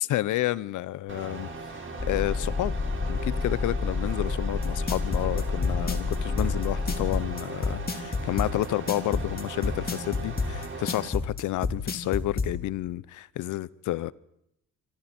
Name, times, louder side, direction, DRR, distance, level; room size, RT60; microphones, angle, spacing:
voice 1, 0.0-1.5 2.1-2.7 3.1-14.1, left 15 dB, 85° left, 20 dB, 0.9 m, -30 dB
sound 1, 1.1-11.1, right 3 dB, 40° right, 4.8 m, -39 dB
sound 2, 2.0-7.3, left 4 dB, 15° left, 0.9 m, -30 dB
sound 3, 4.6-12.5, left 4 dB, 30° left, 3.7 m, -28 dB
26.5 x 26.0 x 4.4 m, 0.79 s
cardioid pair, 90°, 30 cm